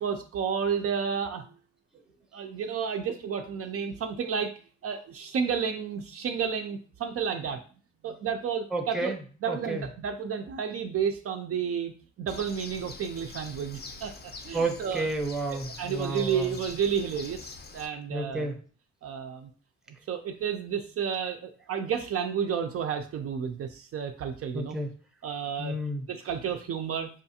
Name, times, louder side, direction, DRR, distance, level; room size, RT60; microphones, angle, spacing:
voice 1, 0.0-1.4 2.3-4.5 4.8-7.6 8.0-9.1 9.4-11.9 12.2-14.1 14.4-15.1 15.8-18.5 19.0-19.5 20.1-24.8 25.2-25.8 26.1-27.1, right 7 dB, 50° right, 4 dB, 0.4 m, -31 dB
voice 2, 8.7-9.2 9.5-9.8 14.5-16.6 18.1-18.6 24.5-24.9 25.6-26.1, right 2 dB, ahead, 3 dB, 0.7 m, -31 dB
Bird, 12.3-17.9, left 3 dB, 35° left, 0.5 m, -45 dB
5.0 x 2.3 x 2.7 m, 0.40 s
cardioid pair, 90°, 30 cm